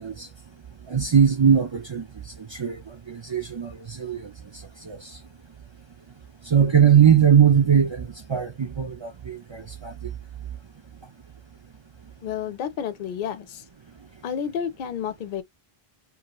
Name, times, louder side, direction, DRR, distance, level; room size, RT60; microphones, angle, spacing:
voice 1, 0.0-5.3 6.4-10.6 11.0-11.1 12.0-12.1 13.9-14.2, right 8 dB, 45° right, 0.4 m, -22 dB
voice 2, 12.2-13.6 14.2-15.4, left 8 dB, 60° left, 0.6 m, -30 dB
2.7 x 2.4 x 2.9 m
omnidirectional pair, 1.0 m